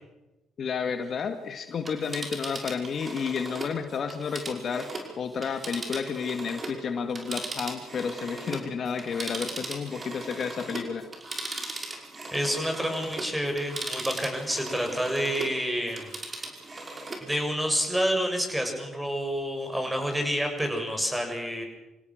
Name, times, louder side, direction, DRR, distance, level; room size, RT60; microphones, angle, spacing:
voice 1, 0.6-4.9 5.2-11.1, left 6 dB, 55° left, 7 dB, 2.1 m, -31 dB
Telephone, 1.7-6.8 7.1-15.6 15.9-17.3 17.7-17.8, right 2 dB, 30° right, 5.5 m, -38 dB
voice 2, 12.3-16.1 17.2-21.6, equal, 10° right, 3 dB, 7.8 m, -28 dB
28.0 x 17.0 x 6.6 m, 1.0 s
supercardioid pair, 70°, 0 cm